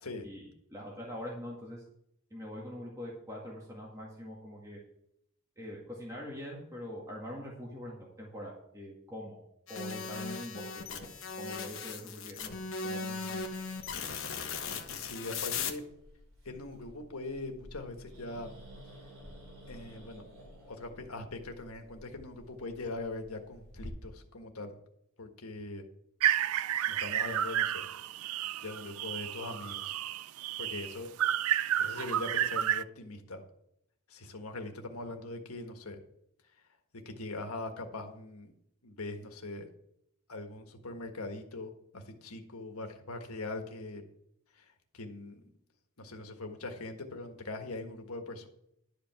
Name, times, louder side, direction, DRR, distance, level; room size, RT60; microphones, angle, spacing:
voice 1, 0.2-1.8 2.3-4.8 5.6-9.4 9.7-12.5 12.8-13.5, equal, 15° right, -4 dB, 1.9 m, -44 dB
sound 1, 9.7-15.7, left 5 dB, 60° left, 1.3 m, -38 dB
Growling, 13.4-23.9, equal, 60° right, 4.2 m, -53 dB
voice 2, 14.9-15.8 16.4-18.5 19.7-20.2 20.7-24.8 25.2-25.8 26.9-27.8 28.6-29.9 30.6-31.1 31.8-33.4 34.1-36.0 37.0-38.5 38.8-39.7 40.3-44.0 44.5-44.7 44.9-45.4 46.0-48.5, left 2 dB, 85° left, 5 dB, 1.6 m, -41 dB
sound 2, 26.2-32.8, right 11 dB, 80° right, 0.4 m, -31 dB
11.5 x 5.2 x 7.5 m, 0.76 s
head